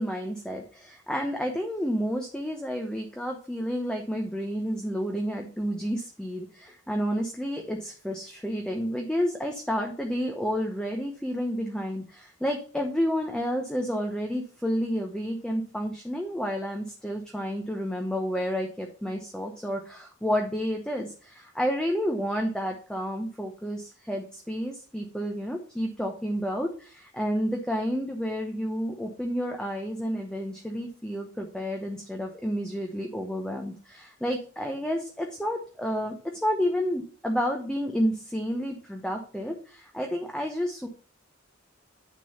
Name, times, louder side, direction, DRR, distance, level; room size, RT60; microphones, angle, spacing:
voice 1, 0.0-36.1 36.4-40.9, equal, 5° left, 2 dB, 0.9 m, -30 dB
9.5 x 3.8 x 6.9 m, 0.41 s
head